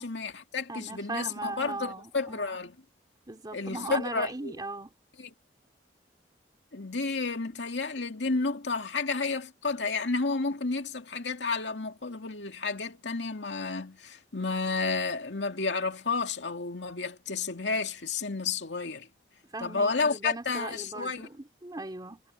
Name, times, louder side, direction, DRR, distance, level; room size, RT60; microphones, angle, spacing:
voice 1, 0.0-2.8 3.5-4.5 5.2-5.3 6.7-19.1 19.6-21.3, left 4 dB, 90° left, 2.2 m, -31 dB
voice 2, 0.7-2.6 3.3-4.9 19.5-22.2, right 2 dB, 25° right, 2.5 m, -38 dB
head